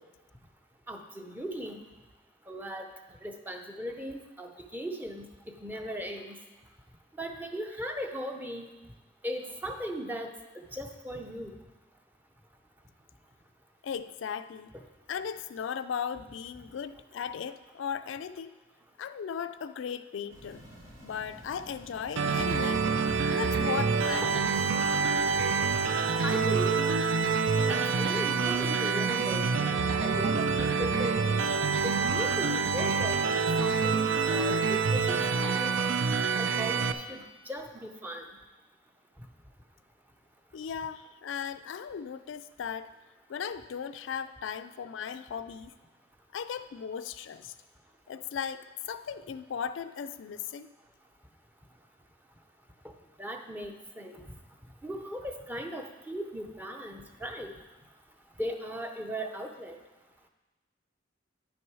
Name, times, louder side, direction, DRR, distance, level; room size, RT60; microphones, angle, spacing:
voice 1, 0.9-1.8 2.5-2.9 3.2-6.4 7.2-8.7 9.2-10.3 10.7-11.6 26.2-26.8 27.7-29.5 30.0-31.3 31.8-33.2 33.6-35.8 36.4-38.2 53.2-54.2 54.8-57.5 58.4-59.8, equal, 10° right, 4 dB, 0.6 m, -38 dB
voice 2, 13.8-14.7 15.1-18.5 19.0-20.6 21.0-22.9 23.3-24.6 40.5-42.9 43.3-45.7 46.3-47.5 48.1-50.7, left 7 dB, 70° left, 11 dB, 0.3 m, -37 dB
sound 1, 20.3-26.5, equal, 90° right, 2.2 m, -51 dB
sound 2, 22.2-36.9, right 5 dB, 65° right, 0.5 m, -27 dB
10.0 x 6.1 x 4.7 m, 1.1 s
head